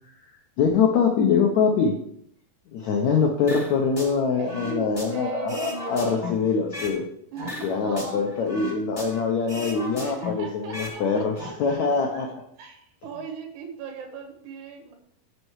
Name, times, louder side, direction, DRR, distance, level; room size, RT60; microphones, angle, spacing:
voice 1, 0.6-1.9 2.7-7.0 7.6-12.3, left 5 dB, 80° left, 1 dB, 1.6 m, -23 dB
sound 1, 3.5-4.1 4.5-7.0 7.4-9.2 9.5-11.0 11.2-11.5, left 2 dB, 25° left, 0.7 m, -36 dB
voice 2, 4.4-6.4 7.3-8.9 9.9-11.8 12.1-12.2 12.6-14.9, right 5 dB, 80° right, 4 dB, 3.5 m, -38 dB
9.8 x 5.5 x 4.7 m, 0.73 s
omnidirectional pair, 4.5 m